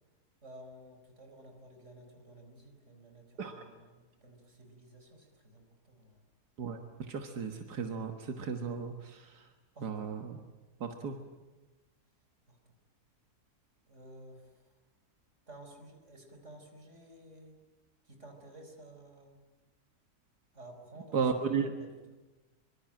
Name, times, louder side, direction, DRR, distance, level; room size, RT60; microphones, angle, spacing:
voice 1, 0.4-6.2 9.7-10.1 12.5-12.6 13.9-14.7 15.5-17.6 18.0-19.4 20.5-22.0, right 1 dB, 45° right, 5 dB, 4.8 m, -53 dB
voice 2, 6.6-9.5 9.8-10.4 10.8-11.2 21.1-21.7, right 6 dB, 85° right, 5 dB, 2.0 m, -35 dB
24.5 x 24.0 x 8.9 m, 1.2 s
omnidirectional pair, 1.7 m